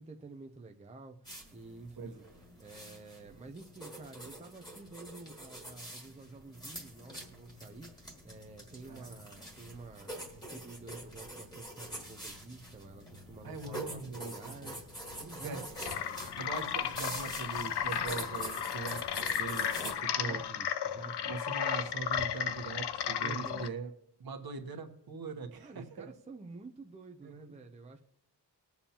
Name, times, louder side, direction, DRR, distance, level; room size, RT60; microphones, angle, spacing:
voice 1, 0.0-2.2 2.6-14.9 15.2-15.7 15.9-16.3 20.1-21.3 23.2-23.7 25.6-28.0, right 3 dB, 15° right, 3 dB, 0.5 m, -49 dB
sound 1, 1.2-19.9, right 1 dB, 10° left, 1.9 m, -46 dB
voice 2, 2.0-2.3 8.8-9.2 13.4-14.8 15.4-15.7 16.4-20.4 21.2-23.9 24.2-26.1 27.2-27.5, right 4 dB, 60° right, 6 dB, 1.2 m, -41 dB
sound 2, 15.8-23.7, left 9 dB, 70° left, 0.5 m, -34 dB
20.5 x 7.1 x 2.9 m, 0.79 s
wide cardioid pair, 175°, 41 cm